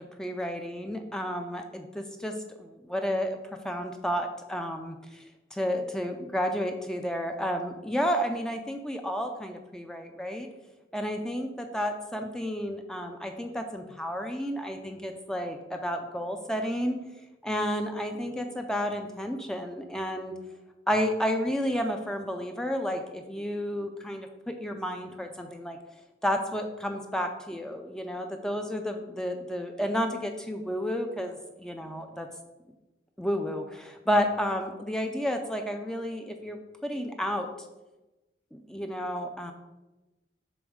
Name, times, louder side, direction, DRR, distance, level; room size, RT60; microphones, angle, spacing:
voice 1, 0.0-3.4 3.6-5.2 5.5-10.5 10.9-17.0 17.4-20.3 20.9-25.8 26.2-32.3 33.2-37.5 38.5-39.5, equal, 5° left, 4 dB, 0.3 m, -31 dB
7.0 x 3.1 x 4.9 m, 1.1 s
head